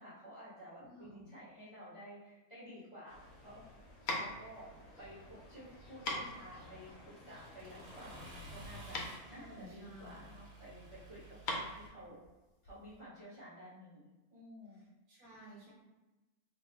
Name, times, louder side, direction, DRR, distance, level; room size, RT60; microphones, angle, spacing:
voice 1, 0.0-3.6 4.2-4.7 5.0-9.0 9.3-12.2 12.6-14.8, equal, 20° left, -11 dB, 1.3 m, -52 dB
voice 2, 0.8-1.3 9.3-10.2 15.1-15.7, right 1 dB, 40° right, -8 dB, 1.3 m, -53 dB
sound 1, 3.1-13.0, left 2 dB, 80° left, 1.1 m, -43 dB
sound 2, 3.1-8.3, left 1 dB, 60° left, 1.1 m, -56 dB
Accelerating revving vroom, 6.6-11.9, right 1 dB, 70° right, 1.2 m, -53 dB
3.0 x 2.4 x 3.5 m, 1.1 s
omnidirectional pair, 1.5 m